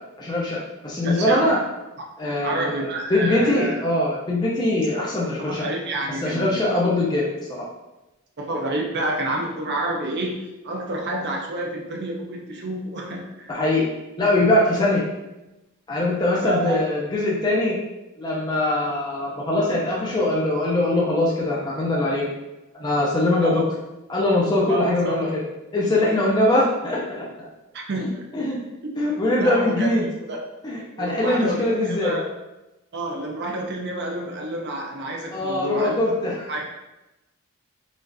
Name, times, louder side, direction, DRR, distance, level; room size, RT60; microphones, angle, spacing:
voice 1, 0.2-1.6 2.2-5.7 6.2-7.2 13.5-13.9 14.2-15.0 15.9-17.8 18.2-22.3 22.8-23.6 24.1-25.4 25.7-27.5 28.0-28.6 29.0-30.0 30.6-32.2 35.3-36.6, left 1 dB, 20° left, -5 dB, 0.5 m, -22 dB
voice 2, 1.0-1.4 2.4-3.8 5.4-6.6 8.4-13.5 16.4-16.8 23.4-23.6 24.7-25.1 27.7-28.2 29.4-29.9 30.3-30.4 31.0-32.2 32.9-35.9 36.5-36.6, right 1 dB, 50° right, 1 dB, 0.6 m, -29 dB
5.0 x 2.5 x 2.6 m, 0.98 s
head